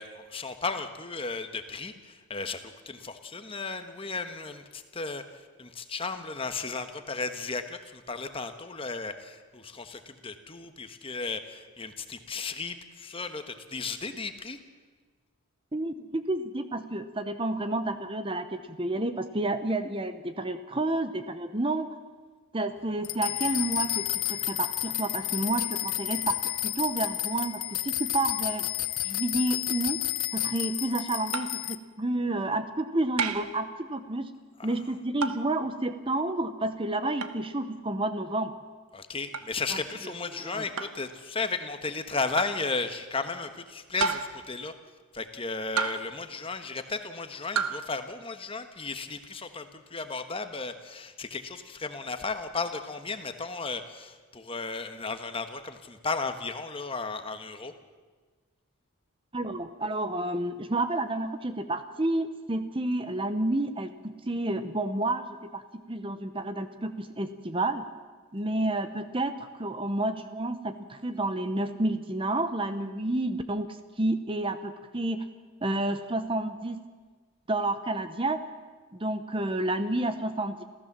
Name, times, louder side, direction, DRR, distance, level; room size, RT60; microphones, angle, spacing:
voice 1, 0.0-14.6 34.6-34.7 38.9-44.7 45.1-57.7, left 4 dB, 25° left, 8 dB, 1.3 m, -35 dB
voice 2, 15.7-21.9 22.5-28.7 29.0-30.0 30.3-34.3 34.6-38.5 39.7-39.8 40.3-40.7 59.3-65.6 65.9-67.9 68.3-73.7 74.0-75.2 75.6-76.9 77.5-78.4 78.9-80.6, right 2 dB, 25° right, 10 dB, 0.8 m, -30 dB
sound 1, 23.0-31.8, left 15 dB, 75° left, 0.7 m, -31 dB
sound 2, 31.3-31.6 33.2-33.6 35.2-35.5 37.2-37.4 39.3-39.5 40.8-41.0 42.4-42.6 44.0-44.5 45.8-46.2 47.5-47.8, right 5 dB, 80° right, 1.2 m, -30 dB
27.5 x 15.0 x 7.4 m, 1.4 s
head